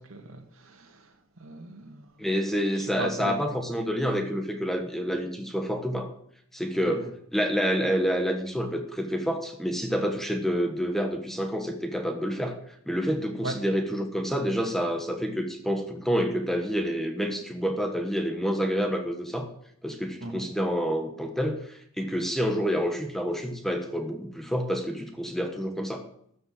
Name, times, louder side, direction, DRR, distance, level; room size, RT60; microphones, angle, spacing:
voice 1, 0.1-1.1 1.4-2.1 2.8-3.3 13.4-13.6 20.2-20.5, right 2 dB, 75° right, 3 dB, 2.3 m, -37 dB
voice 2, 2.2-6.1 6.5-12.6 12.9-19.5 19.8-26.0, equal, ahead, 5 dB, 1.2 m, -28 dB
13.5 x 6.7 x 7.7 m, 0.67 s
head